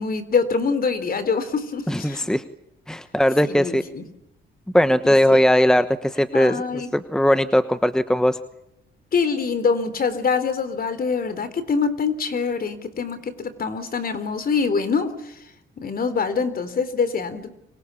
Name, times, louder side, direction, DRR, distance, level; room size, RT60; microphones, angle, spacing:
voice 1, 0.0-2.2 3.5-4.0 5.3-5.4 6.3-6.9 9.1-15.3 15.8-17.5, left 5 dB, 50° left, 12 dB, 3.7 m, -24 dB
voice 2, 1.9-2.4 2.9-3.8 4.7-8.4, equal, 5° left, 11 dB, 1.1 m, -19 dB
30.0 x 24.5 x 7.2 m, 0.83 s
cardioid pair, 90°, 20 cm